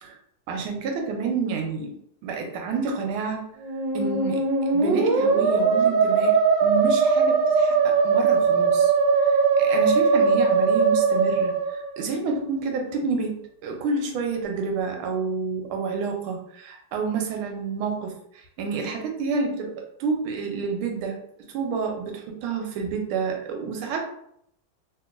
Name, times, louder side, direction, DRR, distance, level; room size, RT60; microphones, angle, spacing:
voice 1, 0.5-2.0 2.2-3.5 3.9-4.4 4.7-21.2 21.5-24.1, right 4 dB, 85° right, 3 dB, 1.5 m, -29 dB
Musical instrument, 3.6-12.3, right 5 dB, 70° right, 1.2 m, -20 dB
3.1 x 2.9 x 2.4 m, 0.71 s
omnidirectional pair, 2.3 m